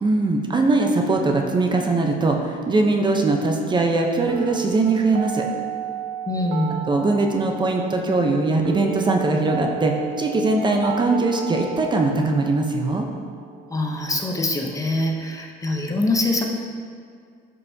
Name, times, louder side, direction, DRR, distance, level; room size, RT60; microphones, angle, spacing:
voice 1, 0.0-5.5 6.9-13.1, right 3 dB, 25° right, 2 dB, 0.7 m, -21 dB
sound 1, 4.3-14.3, right 8 dB, 75° right, 0.5 m, -34 dB
voice 2, 6.3-6.8 13.7-16.4, left 2 dB, 15° left, 1 dB, 0.8 m, -24 dB
11.0 x 5.6 x 2.8 m, 2.1 s
cardioid pair, 110°, 19 cm